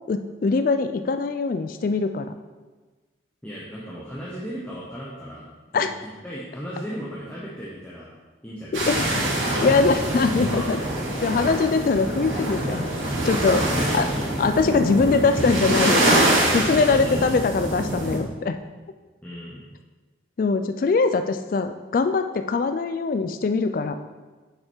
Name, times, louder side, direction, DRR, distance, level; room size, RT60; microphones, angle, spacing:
voice 1, 0.1-2.3 5.7-5.9 8.9-9.1 9.6-10.8 11.2-12.9 13.2-13.6 13.9-14.0 14.4-18.6 20.4-24.0, left 4 dB, 45° left, 8 dB, 0.3 m, -22 dB
voice 2, 3.4-5.5 5.7-5.9 6.2-8.1 8.4-8.8 9.1-10.0 10.5-10.8 13.7-14.3 16.9-17.4 19.2-19.6, equal, 10° left, -7 dB, 0.9 m, -36 dB
sound 1, 8.7-18.2, right 1 dB, 90° right, 2.5 m, -24 dB
6.6 x 5.7 x 4.5 m, 1.3 s
head